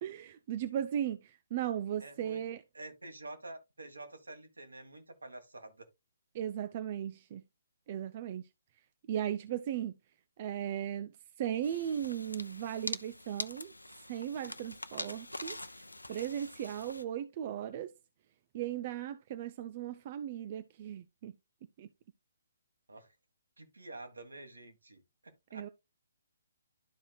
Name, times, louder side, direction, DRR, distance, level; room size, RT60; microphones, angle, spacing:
voice 1, 0.0-2.6 6.3-7.4 7.9-8.5 9.1-10.0 10.4-17.9 18.5-21.4 21.8-21.9 25.5-25.7, right 10 dB, 35° right, 0.4 m, -37 dB
voice 2, 2.0-2.4 2.7-5.9 22.9-23.1 23.6-25.7, right 2 dB, 70° right, 1.7 m, -48 dB
sound 1, 11.6-17.0, left 2 dB, 80° left, 0.6 m, -44 dB
12.0 x 4.8 x 2.3 m
figure-of-eight pair, 135°, 0 cm